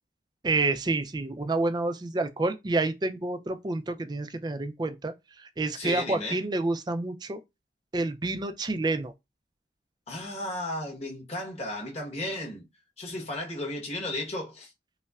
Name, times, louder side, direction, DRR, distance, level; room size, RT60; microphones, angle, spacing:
voice 1, 0.4-7.4 7.9-9.1, right 2 dB, 20° right, 0.3 m, -29 dB
voice 2, 5.7-6.4 10.1-12.7 13.0-14.7, left 1 dB, 35° left, 1.1 m, -34 dB
5.3 x 2.1 x 2.3 m
head